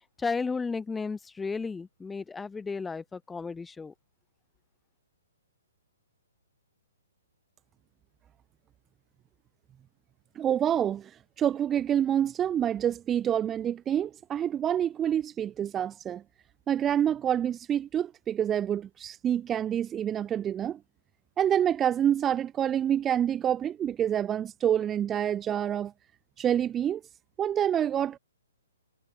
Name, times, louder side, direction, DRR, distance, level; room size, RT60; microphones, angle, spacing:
voice 1, 0.2-3.9, left 4 dB, 10° left, 6.6 m, -33 dB
voice 2, 10.3-16.2 16.7-20.8 21.4-25.9 26.4-27.0 27.4-28.2, right 10 dB, 15° right, 4.4 m, -27 dB
figure-of-eight pair, 125°, 0 cm